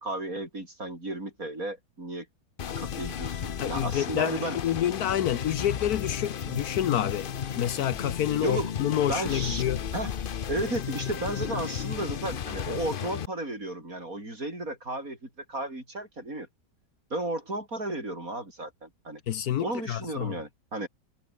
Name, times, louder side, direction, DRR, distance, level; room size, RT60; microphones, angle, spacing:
voice 1, 0.0-2.3 2.8-4.6 8.4-8.7 9.1-9.6 9.9-10.1 10.5-16.5 17.1-19.2 19.6-20.9, right 2 dB, 55° right, 8.1 m, -34 dB
sound 1, 2.6-13.2, left 8 dB, 55° left, 0.6 m, -34 dB
voice 2, 3.6-7.3 7.6-9.8 19.3-20.4, left 11 dB, 70° left, 1.2 m, -28 dB
omnidirectional pair, 1.8 m